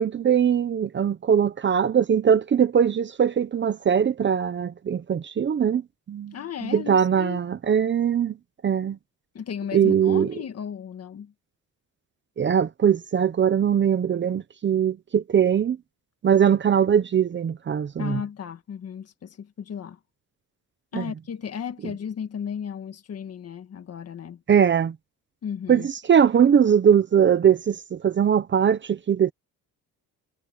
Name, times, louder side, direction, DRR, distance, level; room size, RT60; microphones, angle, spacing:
voice 1, 0.0-6.3 6.6-8.3 8.6-9.0 9.7-10.3 12.4-15.8 16.2-18.2 20.9-21.1 24.5-24.9 25.7-29.3, right 8 dB, 35° right, 0.7 m, -21 dB
voice 2, 6.3-7.4 9.3-11.3 18.0-20.0 20.9-24.4 25.4-25.9, left 8 dB, 45° left, 1.7 m, -34 dB
cardioid pair, 170°, 34 cm